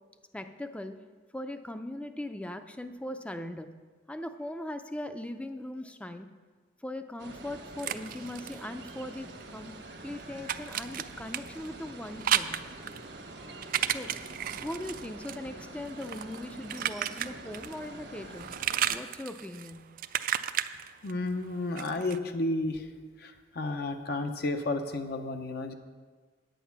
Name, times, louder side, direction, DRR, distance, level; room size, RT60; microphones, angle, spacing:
voice 1, 0.3-1.0 1.3-3.7 4.1-6.3 6.8-12.6 13.9-14.1 14.6-18.5 18.9-19.9, left 1 dB, 5° left, 9 dB, 0.5 m, -39 dB
sound 1, 7.2-19.0, right 2 dB, 75° right, 1.2 m, -46 dB
sound 2, 7.4-9.5 9.8-17.9 18.2-22.2, right 10 dB, 50° right, 0.4 m, -34 dB
voice 2, 21.0-22.9 23.2-25.7, left 2 dB, 60° left, 6 dB, 0.7 m, -32 dB
9.2 x 8.2 x 5.8 m, 1.5 s
head